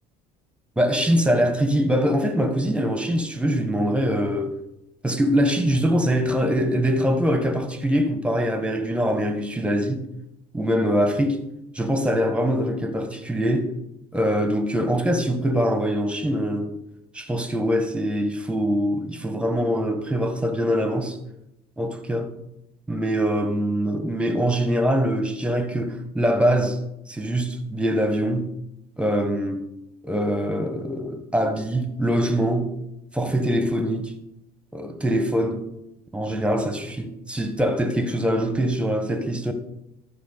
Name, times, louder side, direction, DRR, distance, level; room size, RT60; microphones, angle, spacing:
voice 1, 0.8-4.5 5.0-10.0 10.5-11.4 11.7-13.7 14.1-16.7 17.1-21.2 21.8-22.3 22.9-26.8 27.1-28.5 29.0-29.7 30.0-32.7 33.1-34.1 34.7-35.6 36.1-39.5, equal, 5° right, 1.6 m, -23 dB
13.5 x 5.8 x 4.2 m
hypercardioid pair, 65°, 20 cm